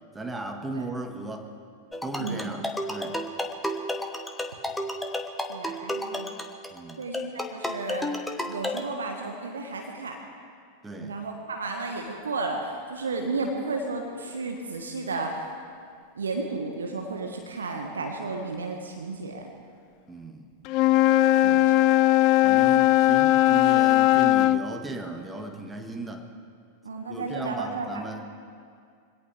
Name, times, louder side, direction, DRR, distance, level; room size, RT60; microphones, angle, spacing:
voice 1, 0.1-1.5 2.0-3.2 6.7-7.0 10.8-11.1 20.1-20.5 21.4-21.6 22.4-26.3 27.1-28.2, right 2 dB, 10° right, 4 dB, 1.6 m, -36 dB
sound 1, 1.9-8.8, left 1 dB, 5° left, 1.1 m, -32 dB
voice 2, 2.2-2.5 5.5-6.3 7.0-8.1 8.5-10.2 11.0-15.5 16.1-19.5 21.6-21.9 26.8-28.0, right 3 dB, 70° right, 2 dB, 1.5 m, -33 dB
Wind instrument woodwind instrument, 20.7-24.6, left 15 dB, 40° left, 0.4 m, -19 dB
24.5 x 17.5 x 3.4 m, 2.2 s
figure-of-eight pair, 90°, 0 cm